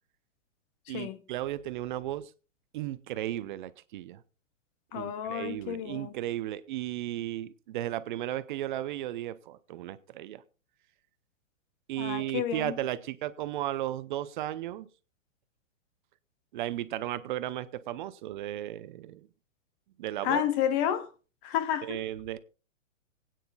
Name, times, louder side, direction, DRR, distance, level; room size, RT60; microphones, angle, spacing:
voice 1, 0.9-2.3 2.7-4.2 4.9-10.4 11.9-14.9 16.5-19.3 20.0-20.4 21.8-22.4, right 13 dB, 40° right, 0.6 m, -35 dB
voice 2, 4.9-6.1 12.0-12.7 20.2-21.1 21.4-22.0, left 10 dB, 25° left, 0.5 m, -30 dB
25.5 x 9.2 x 2.3 m
hypercardioid pair, 130°, 37 cm